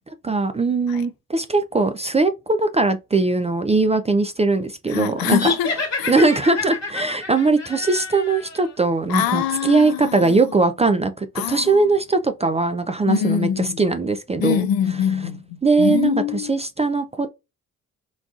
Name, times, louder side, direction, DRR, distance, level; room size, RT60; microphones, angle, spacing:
voice 1, 0.2-5.4 6.1-14.7 15.6-17.3, right 3 dB, 15° right, 0.3 m, -20 dB
voice 2, 4.9-6.1 9.1-10.4 11.4-11.9 13.1-13.9 14.4-16.5, left 9 dB, 60° left, 0.5 m, -24 dB
sound 1, 5.3-8.7, left 4 dB, 40° left, 1.4 m, -29 dB
3.9 x 2.3 x 2.4 m
hypercardioid pair, 45°, 40 cm